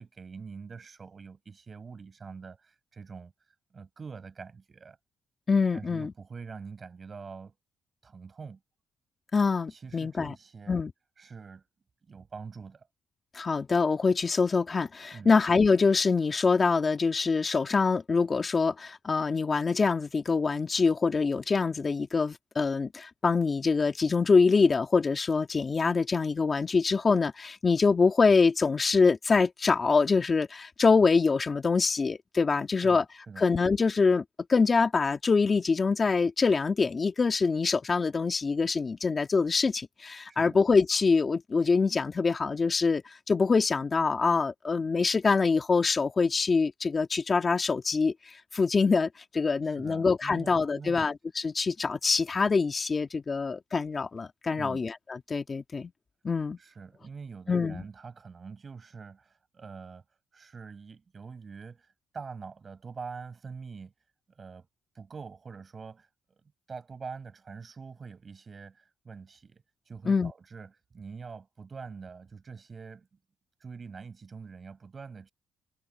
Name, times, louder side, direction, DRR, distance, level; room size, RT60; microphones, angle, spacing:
voice 1, 0.0-3.3 3.7-5.0 5.7-7.5 8.0-8.6 9.7-10.8 11.2-11.7 12.0-12.9 15.1-15.4 32.7-33.5 40.3-40.6 49.6-51.1 54.6-54.9 56.6-60.0 60.3-63.9 64.3-64.7 64.9-66.1 66.4-73.1 73.6-75.3, right 5 dB, 40° right, 7.3 m, -44 dB
voice 2, 5.5-6.1 9.3-10.3 10.7-10.9 13.3-33.0 33.4-34.2 34.5-43.0 43.3-55.9 56.2-56.6 57.5-57.8 70.1-70.3, left 4 dB, 35° left, 2.1 m, -25 dB
cardioid pair, 90°, 0 cm